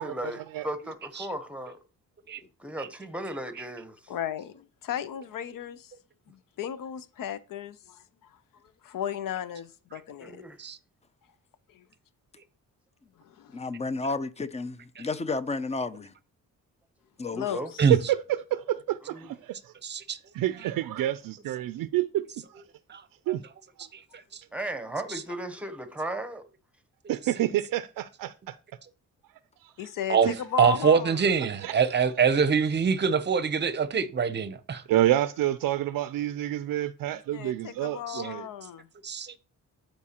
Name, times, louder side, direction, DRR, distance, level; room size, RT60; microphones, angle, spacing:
voice 1, 0.0-1.8 2.6-4.0 10.2-10.6 17.5-17.7 19.0-19.3 24.5-26.4, right 1 dB, 5° right, 0.9 m, -36 dB
voice 2, 4.1-5.9 6.3-8.4 8.8-10.4 11.7-11.8 13.2-13.6 17.3-17.9 29.8-31.2 37.1-38.9, left 9 dB, 75° left, 0.6 m, -35 dB
voice 3, 13.5-16.1 17.2-17.5, left 3 dB, 20° left, 0.5 m, -32 dB
voice 4, 17.9-19.6 20.3-22.2 23.3-23.4 27.1-28.6 30.2-30.4 31.6-31.7 34.9-38.5, right 13 dB, 85° right, 0.5 m, -28 dB
voice 5, 19.8-20.2 22.9-23.0 30.1-30.3 30.6-34.8 38.1-38.2 39.0-39.4, right 6 dB, 30° right, 0.7 m, -24 dB
13.0 x 4.5 x 2.9 m
cardioid pair, 135°, 33 cm